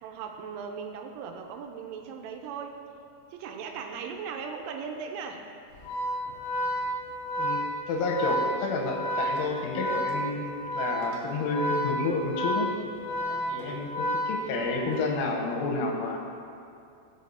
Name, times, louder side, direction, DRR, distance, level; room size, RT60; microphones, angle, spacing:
voice 1, 0.0-2.8 3.3-5.5 13.2-13.7, right 6 dB, 90° right, 3 dB, 3.1 m, -38 dB
Organ, 5.7-14.9, equal, 65° left, 2.0 m, -31 dB
voice 2, 7.4-12.7 13.5-16.2, left 3 dB, 85° left, 0 dB, 3.3 m, -30 dB
16.0 x 6.0 x 2.7 m, 2.5 s
omnidirectional pair, 5.6 m